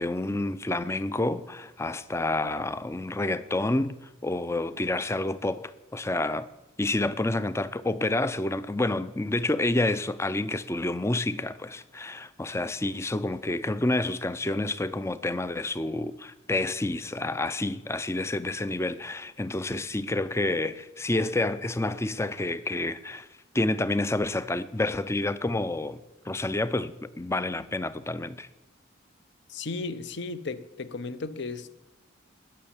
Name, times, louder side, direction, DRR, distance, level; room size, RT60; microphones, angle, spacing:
voice 1, 0.0-3.9 4.2-6.5 6.8-23.3 23.5-26.0 26.2-28.5, left 2 dB, 15° left, 0.5 m, -29 dB
voice 2, 29.5-31.7, left 3 dB, 55° left, 0.8 m, -35 dB
20.0 x 7.3 x 7.2 m
head